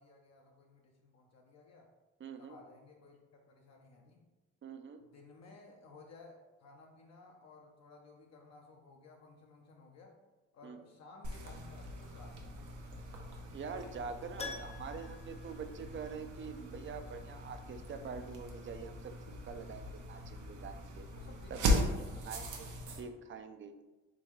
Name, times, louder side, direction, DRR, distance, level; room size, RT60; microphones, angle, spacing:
voice 1, 0.0-1.9 2.4-4.2 5.0-10.2 10.5-12.6 21.1-22.2, left 3 dB, 60° left, 0 dB, 0.6 m, -57 dB
voice 2, 2.2-2.6 4.6-5.0 10.6-10.8 13.5-21.1 21.5-21.8 22.2-22.7 23.0-23.7, right 5 dB, 40° right, 8 dB, 0.5 m, -45 dB
sound 1, 11.2-23.0, equal, 75° right, 0.8 m, -39 dB
Keyboard (musical), 14.4-16.4 16.7-16.8 19.5-19.6 19.8-19.9, left 4 dB, 20° left, 0.4 m, -47 dB
3.8 x 3.4 x 3.1 m, 1.1 s
cardioid pair, 90°, 30 cm